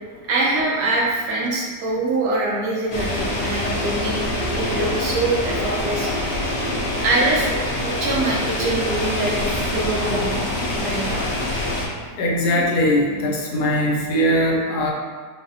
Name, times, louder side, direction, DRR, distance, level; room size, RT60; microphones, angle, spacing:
voice 1, 0.3-6.1 7.0-10.4 10.8-11.3 12.5-12.7, right 2 dB, 80° right, -4 dB, 1.2 m, -24 dB
sound 1, 2.9-11.9, left 1 dB, 60° left, 0.7 m, -25 dB
voice 2, 12.2-14.9, equal, 80° left, -1 dB, 1.1 m, -20 dB
3.9 x 2.1 x 2.6 m, 1.5 s
omnidirectional pair, 1.7 m